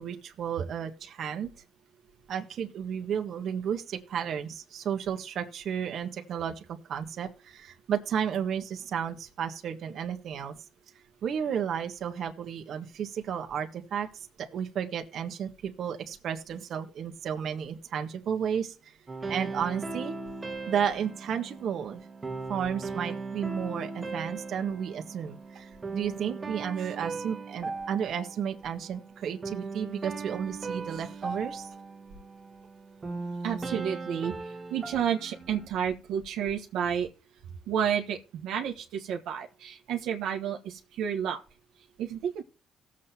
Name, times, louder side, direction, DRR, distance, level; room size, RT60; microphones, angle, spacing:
voice 1, 0.0-1.5 2.3-10.6 11.2-19.0 19.3-20.1 20.7-22.0 22.5-31.7, right 8 dB, 70° right, 5 dB, 1.4 m, -33 dB
sound 1, 19.1-35.7, right 3 dB, 30° right, 1.4 m, -38 dB
voice 2, 33.4-34.3 34.7-37.1 37.7-41.4 42.0-42.4, right 8 dB, 90° right, 1 dB, 1.3 m, -30 dB
18.5 x 7.5 x 2.9 m, 0.35 s
cardioid pair, 90°, 0 cm